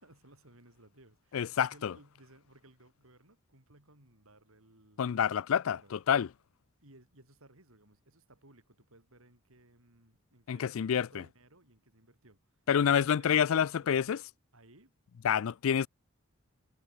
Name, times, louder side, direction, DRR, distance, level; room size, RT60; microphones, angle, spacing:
voice 1, 0.0-5.0 5.5-6.0 6.8-12.6 12.9-14.0 14.5-14.9 15.2-15.4, right 1 dB, 75° right, 7.0 m, -60 dB
voice 2, 1.3-1.9 5.0-6.3 10.5-11.2 12.7-14.2 15.2-15.9, left 8 dB, 70° left, 0.4 m, -28 dB
head